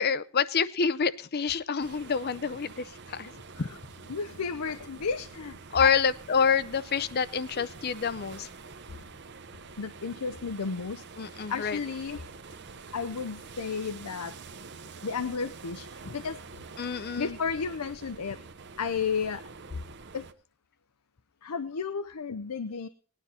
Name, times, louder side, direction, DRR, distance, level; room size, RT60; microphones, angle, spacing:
voice 1, 0.0-3.3 3.6-3.7 5.7-8.5 11.2-11.8 16.8-17.4, left 6 dB, 45° left, 17 dB, 0.6 m, -27 dB
sound 1, 1.8-20.3, right 4 dB, 50° right, 0.8 m, -47 dB
voice 2, 4.1-5.9 7.6-7.7 8.9-9.1 9.8-11.0 11.5-12.2 12.9-14.3 15.0-16.5 17.2-18.4 18.8-19.4 20.1-20.3 21.4-22.9, left 5 dB, 90° left, 11 dB, 0.7 m, -33 dB
19.0 x 9.9 x 4.2 m, 0.41 s
head